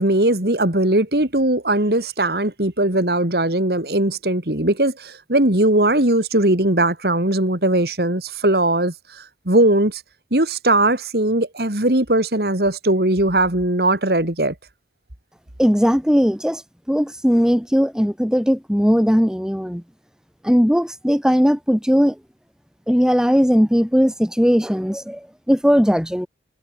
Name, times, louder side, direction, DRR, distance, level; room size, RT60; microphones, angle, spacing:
voice 1, 0.0-8.9 9.4-10.0 10.3-14.5, right 1 dB, 60° right, 3.1 m, -19 dB
voice 2, 15.6-16.6 16.9-19.8 20.4-22.2 22.9-26.3, equal, 5° right, 3.3 m, -18 dB
head